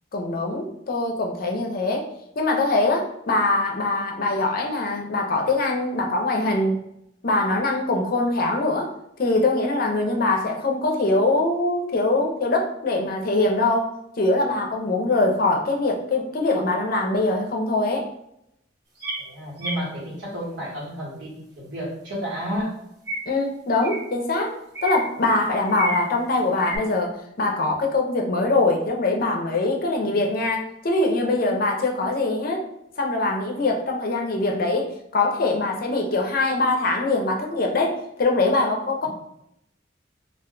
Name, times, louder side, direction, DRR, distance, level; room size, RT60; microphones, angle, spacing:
voice 1, 0.1-2.1 2.4-6.8 7.2-8.9 9.2-13.9 14.2-18.1 23.3-24.5 24.8-32.6 33.0-39.1, left 2 dB, 50° left, 1 dB, 0.5 m, -23 dB
sound 1, 19.0-19.2 19.6-19.8 23.1-23.2 23.8-24.0 24.7-25.0 25.7-26.0 26.6-26.8, right 1 dB, 60° right, 1.1 m, -29 dB
voice 2, 19.2-22.7 30.1-30.2, equal, 80° right, -5 dB, 1.2 m, -31 dB
2.4 x 2.2 x 3.7 m, 0.79 s
head